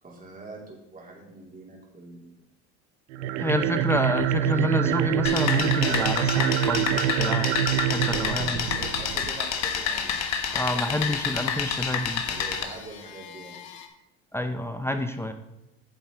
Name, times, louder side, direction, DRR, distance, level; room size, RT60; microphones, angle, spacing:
voice 1, 0.0-2.3 3.1-4.0 8.2-11.4 12.3-13.6, right 2 dB, 25° right, -2 dB, 3.0 m, -44 dB
sound 1, 3.1-9.4, right 12 dB, 90° right, 0.5 m, -25 dB
voice 2, 3.4-7.6 7.9-8.7 10.5-12.2 14.3-15.3, left 1 dB, 5° left, 7 dB, 0.6 m, -28 dB
sound 2, 5.2-12.6, left 7 dB, 50° left, 1.3 m, -29 dB
sound 3, 8.6-13.9, left 8 dB, 80° left, 1.3 m, -43 dB
9.2 x 7.2 x 3.7 m, 0.91 s
supercardioid pair, 95°, 34 cm